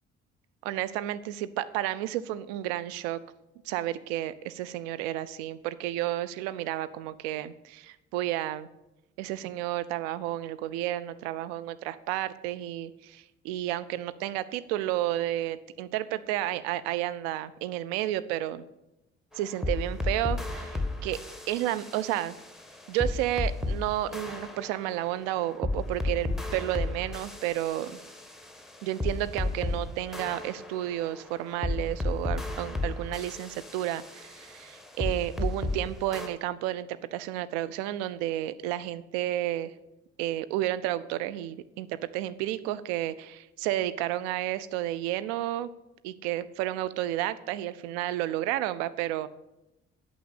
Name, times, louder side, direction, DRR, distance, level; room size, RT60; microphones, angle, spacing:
voice 1, 0.6-3.2 3.7-8.7 9.2-18.6 19.4-21.2 21.5-22.4 22.9-28.0 28.8-39.7 40.2-45.7 46.0-49.3, right 14 dB, 65° right, 15 dB, 0.6 m, -31 dB
sound 1, 19.3-23.8 24.1-29.8 30.1-35.8 36.1-36.3, left 2 dB, ahead, 1.5 m, -33 dB
9.2 x 6.3 x 8.2 m, 0.94 s
figure-of-eight pair, 45°, 35 cm